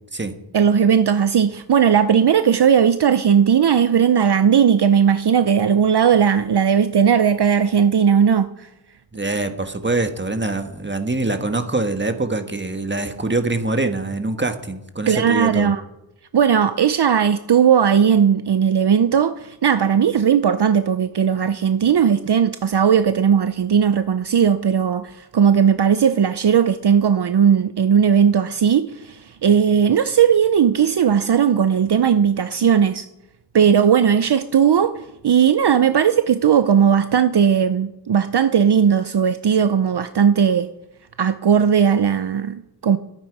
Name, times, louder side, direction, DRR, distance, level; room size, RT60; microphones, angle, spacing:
voice 1, 0.5-8.7 15.1-15.8 16.3-33.1 33.5-40.7 41.2-43.0, right 7 dB, 65° right, 0.7 m, -17 dB
voice 2, 9.1-15.7, right 2 dB, 25° right, 1.6 m, -24 dB
21.0 x 9.1 x 4.8 m
wide cardioid pair, 50°, 43 cm